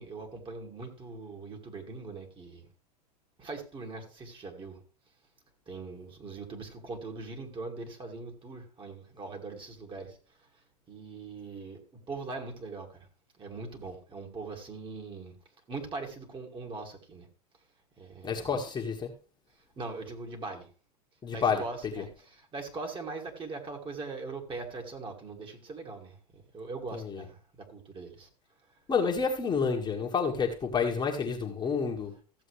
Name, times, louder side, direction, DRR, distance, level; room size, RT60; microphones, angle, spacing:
voice 1, 0.0-2.7 3.4-4.8 5.7-10.2 10.9-13.1 13.4-15.4 15.7-17.3 18.0-18.6 19.8-20.7 21.3-28.3, right 3 dB, 25° right, 2.5 m, -41 dB
voice 2, 18.2-19.1 21.2-21.6 27.0-27.2 28.9-32.1, left 5 dB, 20° left, 1.8 m, -29 dB
14.5 x 7.4 x 3.4 m
hypercardioid pair, 95°, 20 cm